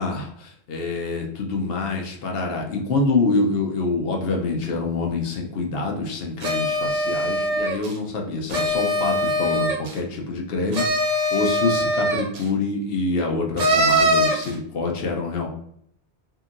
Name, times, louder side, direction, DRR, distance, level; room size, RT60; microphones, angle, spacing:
voice 1, 0.0-10.8 11.3-15.5, left 3 dB, 65° left, 1 dB, 0.8 m, -26 dB
sound 1, 6.4-7.9 8.5-10.0 10.7-12.4 13.6-14.5, equal, 50° right, 0.5 m, -22 dB
2.8 x 2.7 x 2.5 m, 0.70 s
omnidirectional pair, 1.1 m